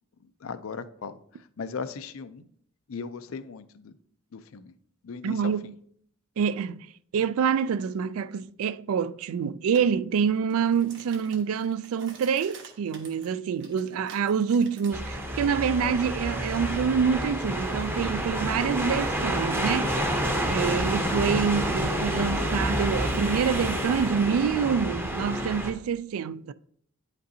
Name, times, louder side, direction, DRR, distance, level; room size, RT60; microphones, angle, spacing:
voice 1, 0.4-1.2 1.6-2.4 2.9-3.9 4.3-4.7 5.0-5.7, left 5 dB, 75° left, 0.5 m, -37 dB
voice 2, 5.2-5.7 6.4-6.9 7.1-19.9 20.5-26.5, right 6 dB, 80° right, 0.3 m, -26 dB
sound 1, 9.7-9.9 10.4-14.9, right 4 dB, 60° right, 1.2 m, -49 dB
sound 2, 14.9-25.7, right 1 dB, 10° right, 0.7 m, -28 dB
8.9 x 5.2 x 2.7 m
head